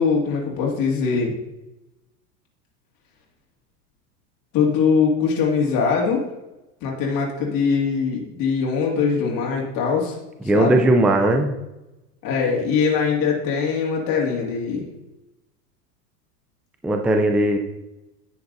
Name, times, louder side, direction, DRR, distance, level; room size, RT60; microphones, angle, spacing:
voice 1, 0.0-1.3 4.5-6.2 6.8-10.2 10.5-10.8 12.2-14.8, left 5 dB, 45° left, -1 dB, 2.2 m, -22 dB
voice 2, 10.5-11.6 16.8-17.6, right 1 dB, ahead, 4 dB, 0.4 m, -18 dB
11.0 x 7.6 x 2.6 m, 0.97 s
hypercardioid pair, 100°, 48 cm